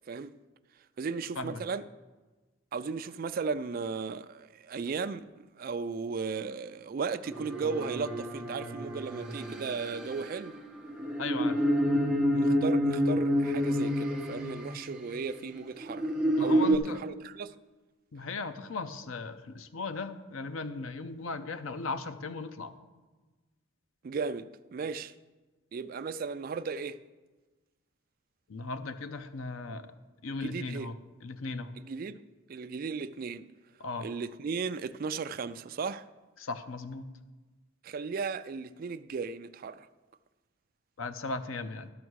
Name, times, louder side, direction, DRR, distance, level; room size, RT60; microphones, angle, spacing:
voice 1, 1.0-1.8 2.7-10.6 12.3-16.1 16.4-17.6 24.0-25.1 25.7-27.0 30.3-30.9 31.8-32.2 32.5-33.5 34.0-36.1 37.8-39.9, right 5 dB, 45° right, 0.3 m, -36 dB
sound 1, 7.3-15.1 15.8-16.8, equal, 5° right, 0.9 m, -29 dB
voice 2, 11.2-11.6 16.4-17.0 18.1-22.7 28.5-29.9 30.2-31.0 31.2-31.8 33.8-34.1 36.4-37.1 41.0-41.9, left 3 dB, 85° left, 0.6 m, -37 dB
12.5 x 5.7 x 6.3 m
head